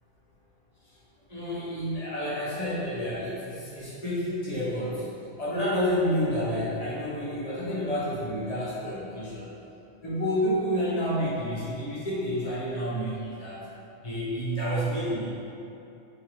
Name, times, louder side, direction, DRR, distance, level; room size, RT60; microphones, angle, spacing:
voice 1, 1.3-9.5 10.0-13.6 14.0-15.4, equal, 40° left, -10 dB, 0.7 m, -29 dB
3.0 x 2.6 x 3.0 m, 2.8 s
omnidirectional pair, 1.3 m